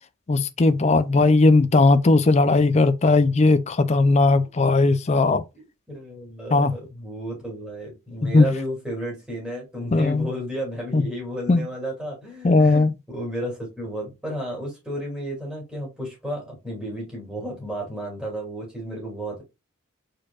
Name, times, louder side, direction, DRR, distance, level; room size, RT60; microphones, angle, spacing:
voice 1, 0.3-5.4 6.5-6.7 8.2-8.5 9.9-10.3 10.9-11.0 11.5-11.6 12.4-12.9, left 3 dB, 30° left, 0.4 m, -18 dB
voice 2, 5.5-19.4, equal, 5° right, 2.6 m, -33 dB
4.6 x 4.4 x 2.3 m
head